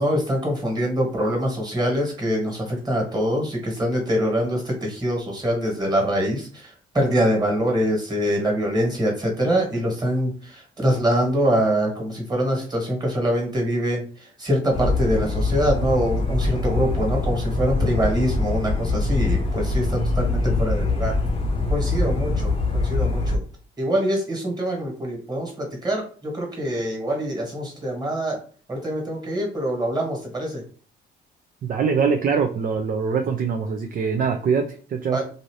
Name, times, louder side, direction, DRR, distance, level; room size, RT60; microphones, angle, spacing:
voice 1, 0.0-21.1 21.7-23.4 23.8-28.4 28.7-30.6 35.1-35.2, equal, 20° right, 0 dB, 1.6 m, -24 dB
sound 1, 14.7-23.4, left 2 dB, 25° left, 0.7 m, -23 dB
voice 2, 31.6-35.2, right 5 dB, 45° right, 5 dB, 0.4 m, -23 dB
2.7 x 2.6 x 3.1 m, 0.42 s
cardioid pair, 90°, 20 cm